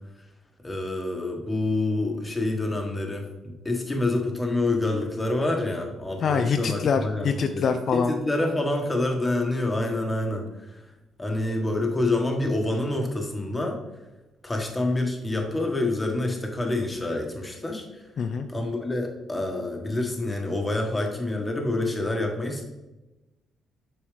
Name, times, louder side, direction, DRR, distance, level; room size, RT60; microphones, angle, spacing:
voice 1, 0.6-7.7 7.9-10.8 11.2-13.8 14.4-18.1 18.5-22.6, left 2 dB, 15° left, 2 dB, 1.3 m, -27 dB
voice 2, 6.2-8.1 18.2-18.5, left 6 dB, 55° left, 6 dB, 0.4 m, -24 dB
7.1 x 4.5 x 3.3 m, 1.0 s
cardioid pair, 90°, 0 cm